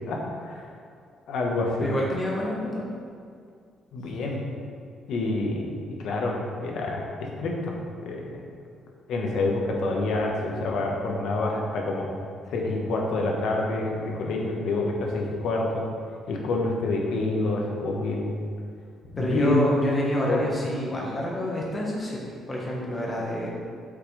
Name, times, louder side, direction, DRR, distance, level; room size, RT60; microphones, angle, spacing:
voice 1, 0.1-0.7 1.3-1.9 3.9-4.4 5.1-7.7 8.0-8.4 9.1-12.1 12.5-15.9 16.3-18.5 19.1-19.7 20.3-20.4, left 2 dB, 60° left, -1 dB, 1.2 m, -27 dB
voice 2, 1.8-2.8 19.2-22.2 22.5-23.5, equal, 15° left, -4 dB, 1.3 m, -27 dB
8.5 x 5.8 x 3.3 m, 2.2 s
cardioid pair, 170°, 0 cm